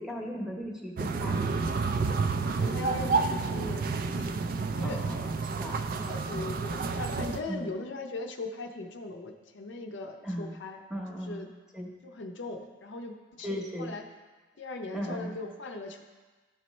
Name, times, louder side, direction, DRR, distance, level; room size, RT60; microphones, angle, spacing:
voice 1, 0.0-1.6 4.8-5.3 5.5-5.9 7.5-7.7 10.2-10.6 10.9-11.4 11.7-11.9 13.4-13.9 14.9-15.3, equal, 5° right, -1 dB, 0.9 m, -37 dB
sound 1, 1.0-7.4, right 4 dB, 45° right, 0.3 m, -30 dB
voice 2, 2.5-4.3 4.7-5.0 5.9-10.8 11.2-11.5 12.0-14.0 14.6-16.0, left 3 dB, 70° left, 3 dB, 0.6 m, -39 dB
12.5 x 4.3 x 3.1 m, 1.3 s
head